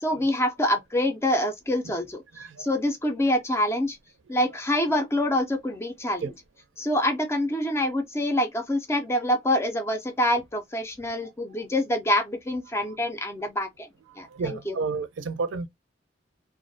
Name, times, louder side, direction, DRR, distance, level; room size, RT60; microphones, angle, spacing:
voice 1, 0.0-2.2 2.6-4.0 4.3-6.3 6.8-13.9 14.2-14.7, left 1 dB, 15° left, 0.4 m, -26 dB
voice 2, 2.4-2.7 6.2-6.3 11.2-11.3 14.3-15.7, right 4 dB, 80° right, 0.5 m, -31 dB
2.3 x 2.1 x 2.5 m
head